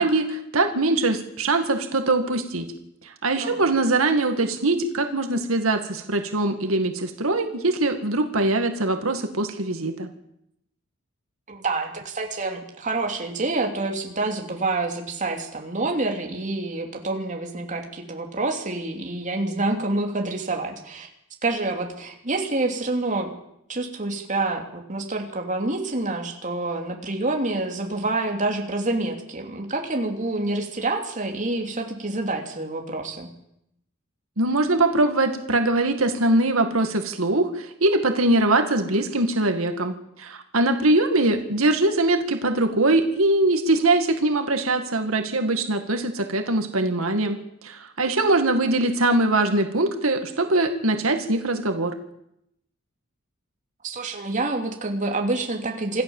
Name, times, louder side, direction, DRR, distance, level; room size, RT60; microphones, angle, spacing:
voice 1, 0.0-2.7 3.0-10.1 34.4-47.4 47.6-51.9, right 2 dB, 90° right, 6 dB, 2.1 m, -22 dB
voice 2, 11.5-21.1 21.4-23.3 23.7-33.3 53.8-56.0, right 2 dB, 40° right, 2 dB, 3.1 m, -27 dB
26.5 x 14.5 x 7.3 m, 0.80 s
head